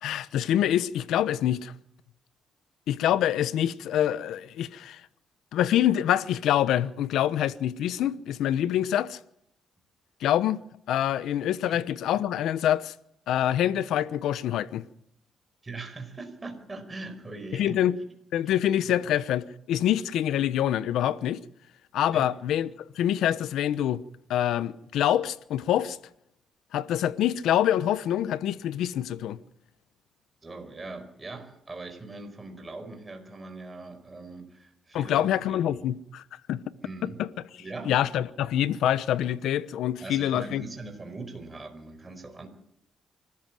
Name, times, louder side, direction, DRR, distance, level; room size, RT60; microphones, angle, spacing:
voice 1, 0.0-1.7 2.9-5.0 5.5-9.2 10.2-10.6 10.9-12.9 13.3-14.8 17.5-17.9 18.3-21.4 21.9-24.0 24.3-26.0 26.7-29.4 34.9-36.2 36.5-36.6 37.2-37.3 37.8-40.6, left 11 dB, 80° left, 0.9 m, -25 dB
voice 2, 15.6-17.8 18.9-19.0 22.1-22.2 30.4-35.8 36.8-37.2 37.6-38.0 40.0-42.5, right 3 dB, 20° right, 4.9 m, -41 dB
25.5 x 13.5 x 7.7 m
cardioid pair, 90°, 0 cm